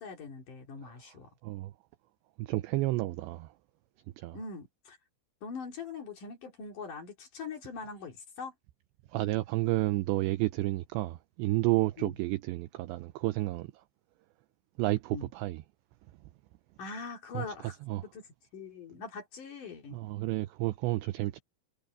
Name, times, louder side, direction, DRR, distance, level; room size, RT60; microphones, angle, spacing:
voice 1, 0.0-1.3 4.3-5.0 5.4-8.5 12.0-12.2 15.1-15.3 16.8-17.8 18.0-18.3 18.5-20.0, left 5 dB, 45° left, 3.6 m, -42 dB
voice 2, 2.4-3.5 4.2-4.4 9.1-13.7 14.8-15.6 17.3-18.0 19.9-21.4, right 19 dB, 85° right, 2.5 m, -31 dB
omnidirectional pair, 5.8 m